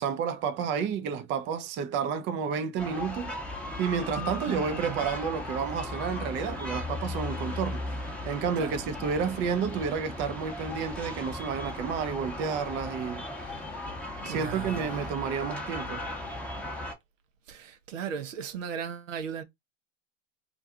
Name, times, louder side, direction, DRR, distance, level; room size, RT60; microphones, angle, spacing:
voice 1, 0.0-3.3 3.8-13.5 14.2-16.0, right 6 dB, 30° right, 0.4 m, -31 dB
sound 1, 2.8-16.9, left 2 dB, 5° left, 0.8 m, -37 dB
voice 2, 4.5-5.0 8.6-8.8 14.2-15.1 17.5-19.4, right 7 dB, 75° right, 0.7 m, -37 dB
2.4 x 2.3 x 2.5 m
hypercardioid pair, 85°, 38 cm